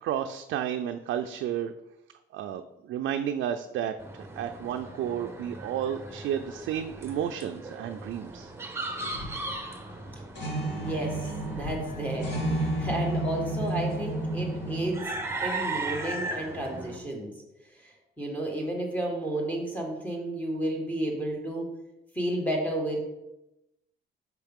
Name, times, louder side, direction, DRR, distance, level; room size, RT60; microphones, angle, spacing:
voice 1, 0.0-1.7 2.3-3.9 4.4-8.5, right 9 dB, 70° right, 6 dB, 0.4 m, -32 dB
sound 1, 4.0-17.0, right 2 dB, 10° right, 1.0 m, -38 dB
sound 2, 9.0-9.5 9.9-10.0 10.4-14.9, right 1 dB, 65° left, 1.9 m, -31 dB
voice 2, 10.8-11.3 11.5-17.3 17.8-21.7 22.1-23.0, right 1 dB, 10° left, 0 dB, 1.5 m, -32 dB
6.0 x 5.6 x 3.6 m, 0.93 s
cardioid pair, 90°, 20 cm